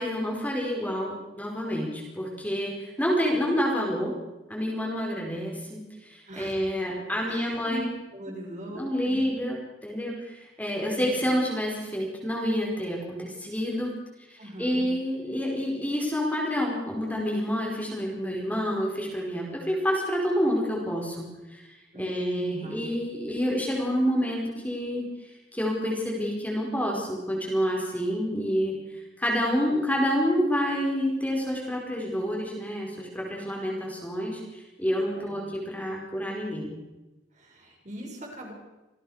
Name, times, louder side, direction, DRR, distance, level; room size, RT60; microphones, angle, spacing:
voice 1, 0.0-4.1 4.5-7.9 8.7-13.9 14.3-21.6 22.0-25.0 25.5-28.7 29.2-36.7, equal, 10° left, -2 dB, 4.8 m, -28 dB
voice 2, 6.3-6.6 7.3-7.8 8.1-9.3 10.8-11.2 14.4-14.9 21.9-22.9 35.1-35.4 37.3-38.5, right 1 dB, 40° right, -1 dB, 6.5 m, -41 dB
27.0 x 17.5 x 6.5 m, 1.1 s
head